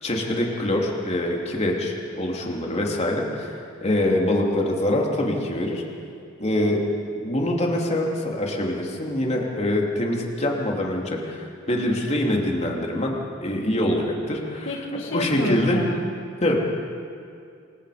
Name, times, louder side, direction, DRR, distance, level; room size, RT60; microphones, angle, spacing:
voice 1, 0.0-5.8 6.4-6.8 7.1-13.2 13.4-15.9 16.4-16.6, left 1 dB, 35° left, -1 dB, 2.9 m, -24 dB
voice 2, 14.7-16.1, left 2 dB, 75° left, 2 dB, 1.9 m, -30 dB
27.5 x 23.5 x 5.1 m, 2.4 s
head